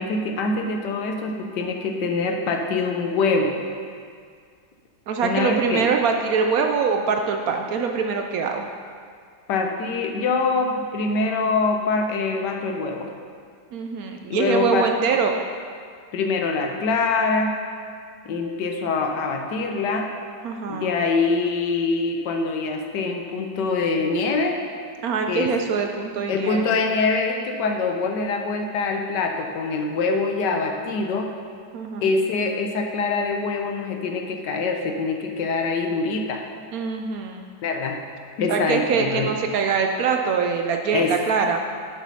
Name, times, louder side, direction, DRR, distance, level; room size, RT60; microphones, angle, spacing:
voice 1, 0.0-3.5 5.2-5.8 9.5-13.1 14.3-14.9 16.1-17.6 18.2-20.1 20.7-24.6 25.3-25.5 26.3-31.3 32.0-36.4 37.6-38.0 38.4-39.3 40.9-41.1, left 4 dB, 80° left, 3 dB, 1.4 m, -24 dB
voice 2, 5.1-8.6 13.7-15.3 20.4-20.9 25.0-26.7 31.7-32.1 36.7-37.4 38.5-41.6, right 5 dB, 70° right, 4 dB, 0.9 m, -23 dB
7.1 x 6.2 x 5.5 m, 2.1 s
omnidirectional pair, 1.8 m